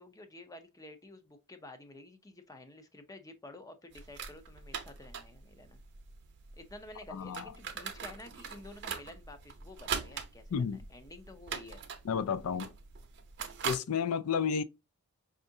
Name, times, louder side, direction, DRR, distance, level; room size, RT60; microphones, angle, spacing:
voice 1, 0.0-5.8 6.5-11.8, left 1 dB, 15° left, 0.5 m, -51 dB
sound 1, 3.9-13.8, right 6 dB, 50° right, 0.6 m, -42 dB
voice 2, 7.1-7.5 10.5-10.8 12.0-12.7 13.6-14.6, left 6 dB, 70° left, 0.4 m, -31 dB
5.3 x 2.4 x 2.6 m
head